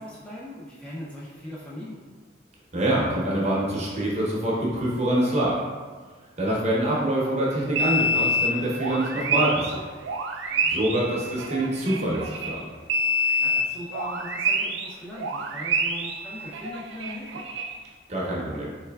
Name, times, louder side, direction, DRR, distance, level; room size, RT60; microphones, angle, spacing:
voice 1, 0.0-2.0 10.5-10.7 13.4-17.4, left 1 dB, 5° left, -8 dB, 0.5 m, -39 dB
voice 2, 2.7-5.6 6.4-9.8 10.7-12.7 18.1-18.7, right 1 dB, 35° right, -4 dB, 0.7 m, -25 dB
sound 1, 7.8-12.6 12.9-14.9 15.2-17.7, equal, 70° right, 0.3 m, -27 dB
4.3 x 3.2 x 2.3 m, 1.5 s
head